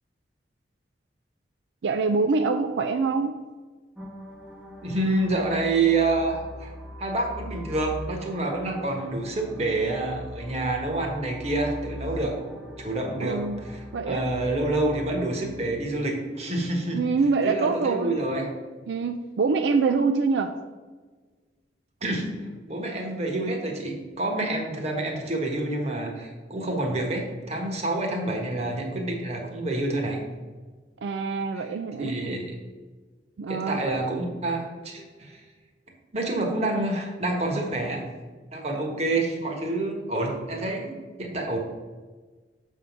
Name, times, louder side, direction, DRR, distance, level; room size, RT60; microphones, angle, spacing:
voice 1, 1.8-3.3 13.2-13.6 13.9-14.3 16.9-18.2 18.9-20.5 31.0-32.2 33.4-33.9, right 4 dB, 80° right, 7 dB, 0.4 m, -25 dB
sound 1, 4.0-15.9, left 1 dB, 5° right, 0.8 m, -42 dB
voice 2, 4.8-6.7 7.0-12.3 12.8-17.0 17.4-18.5 22.0-22.3 22.6-30.2 31.5-31.7 32.0-32.5 33.5-35.4 36.1-38.0 38.5-41.6, right 2 dB, 35° right, 1 dB, 1.2 m, -28 dB
6.9 x 3.7 x 5.8 m, 1.4 s
head